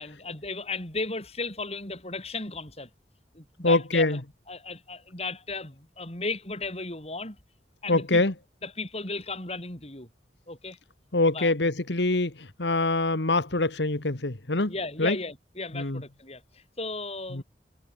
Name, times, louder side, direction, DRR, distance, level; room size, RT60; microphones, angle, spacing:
voice 1, 0.0-2.9 3.3-4.2 4.5-7.4 7.8-8.2 8.6-10.1 10.5-10.8 11.3-11.5 14.7-17.4, left 3 dB, 35° left, 4.8 m, -35 dB
voice 2, 3.6-4.2 7.9-8.3 11.1-14.7 15.0-15.2 15.7-16.0 17.3-17.4, left 2 dB, 80° left, 1.8 m, -24 dB
head